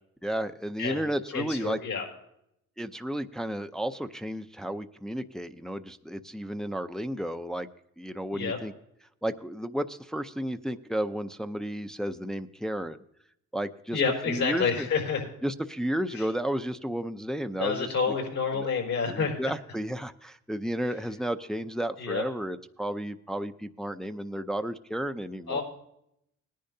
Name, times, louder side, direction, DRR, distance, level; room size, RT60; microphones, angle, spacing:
voice 1, 0.2-1.8 2.8-7.7 8.0-8.7 9.2-13.0 13.5-14.0 14.3-14.9 15.4-17.9 19.1-25.6, right 1 dB, ahead, 8 dB, 0.5 m, -32 dB
voice 2, 1.3-2.0 8.3-8.6 13.9-15.3 16.1-16.3 17.6-19.4 22.0-22.2 25.5-25.6, left 5 dB, 70° left, 1 dB, 5.2 m, -29 dB
19.0 x 10.5 x 2.7 m, 0.75 s
cardioid pair, 90°, 30 cm